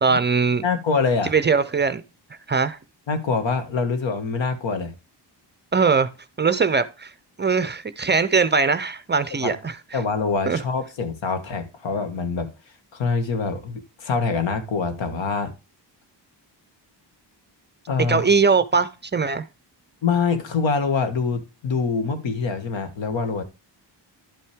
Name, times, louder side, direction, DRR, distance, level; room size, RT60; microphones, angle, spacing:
voice 1, 0.0-0.6 1.2-2.0 2.5-2.8 5.7-6.1 6.4-7.1 7.4-9.8 10.5-10.6 18.1-19.5, right 5 dB, 25° right, 0.4 m, -21 dB
voice 2, 0.6-1.3 3.1-4.9 9.4-9.5 9.9-12.5 12.9-15.5 17.9-18.3 20.0-23.4, left 4 dB, 90° left, 1.7 m, -25 dB
11.0 x 5.6 x 3.4 m
wide cardioid pair, 175°, 44 cm